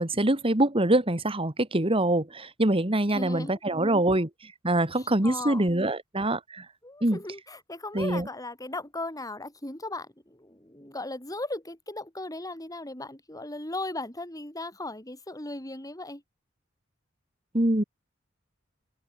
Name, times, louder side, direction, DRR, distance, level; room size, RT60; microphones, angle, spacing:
voice 1, 0.0-4.3 4.6-6.7 7.0-7.2 7.9-8.3 17.5-17.8, right 1 dB, 30° right, 2.2 m, -24 dB
voice 2, 3.1-3.6 4.9-5.7 6.8-16.2, left 2 dB, 20° left, 6.2 m, -37 dB
open air
head